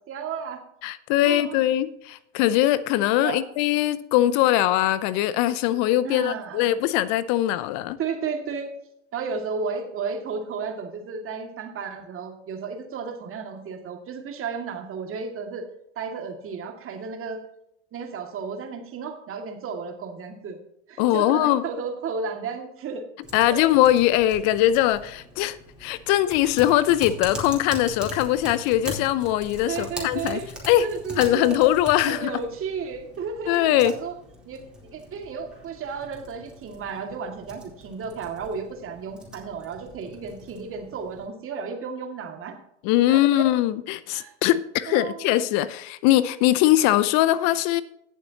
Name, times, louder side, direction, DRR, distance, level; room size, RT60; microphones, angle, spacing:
voice 1, 0.1-0.6 1.2-1.6 3.2-3.4 6.0-6.6 8.0-8.7 9.1-15.7 16.0-17.4 17.9-20.6 20.9-23.1 23.5-23.6 29.7-30.5 30.8-31.6 32.1-34.1 34.4-42.6 43.1-43.5 44.1-44.3 44.9-45.3, right 5 dB, 40° right, 3 dB, 2.3 m, -33 dB
voice 2, 0.8-8.0 21.0-21.6 23.3-30.4 30.7-30.9 31.2-32.3 33.5-33.9 42.8-47.8, left 14 dB, 55° left, 17 dB, 0.6 m, -21 dB
Typing, 23.2-41.3, equal, 5° right, 4.3 m, -41 dB
17.5 x 7.3 x 2.9 m, 0.77 s
hypercardioid pair, 85°, 34 cm